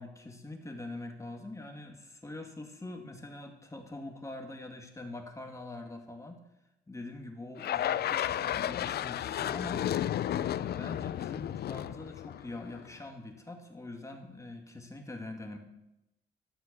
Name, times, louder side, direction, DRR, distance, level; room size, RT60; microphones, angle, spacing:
voice 1, 0.0-6.4 6.9-9.9 10.3-15.6, left 2 dB, 15° left, 3 dB, 2.2 m, -44 dB
sound 1, 7.6-12.9, left 11 dB, 55° left, 0.4 m, -33 dB
13.0 x 7.7 x 6.9 m, 0.88 s
cardioid pair, 90°, 20 cm